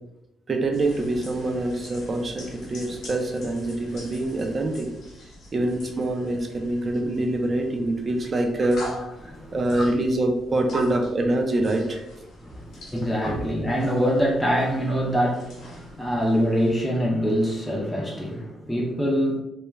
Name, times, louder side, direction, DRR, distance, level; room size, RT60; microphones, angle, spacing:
voice 1, 0.5-4.9 5.5-8.8 9.5-12.0 13.3-13.4, right 1 dB, 35° right, 3 dB, 0.5 m, -25 dB
sound 1, 0.7-16.8, left 1 dB, 65° left, 0.8 m, -44 dB
voice 2, 9.2-9.8 12.4-19.4, equal, 5° left, -2 dB, 0.6 m, -25 dB
2.3 x 2.1 x 3.1 m, 0.86 s
cardioid pair, 90°, 0 cm